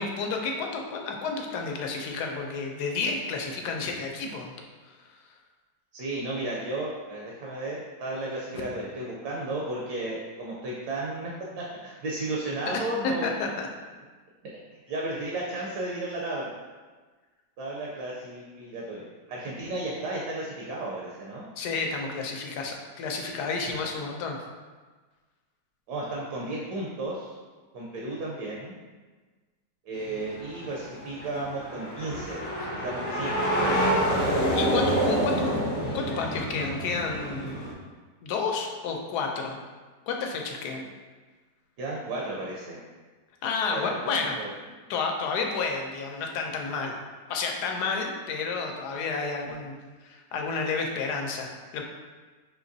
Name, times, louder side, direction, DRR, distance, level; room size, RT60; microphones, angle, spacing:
voice 1, 0.0-4.5 4.9-5.0 12.7-13.7 21.6-24.4 34.2-35.6 35.9-37.6 38.2-39.6 40.1-40.8 43.4-44.4 44.9-46.9 47.3-49.8 50.0-51.8, left 4 dB, 75° left, 2 dB, 1.1 m, -31 dB
voice 2, 5.9-11.3 11.6-13.5 14.9-16.5 17.6-19.0 19.3-21.5 25.9-27.4 27.7-28.8 29.9-32.4 32.8-33.5 41.8-42.8 43.7-43.9 44.4-44.5 49.4-49.5, right 2 dB, 70° right, -3 dB, 1.2 m, -33 dB
sound 1, 30.0-37.7, equal, 60° left, 0.5 m, -28 dB
5.1 x 2.9 x 2.6 m, 1.4 s
omnidirectional pair, 1.9 m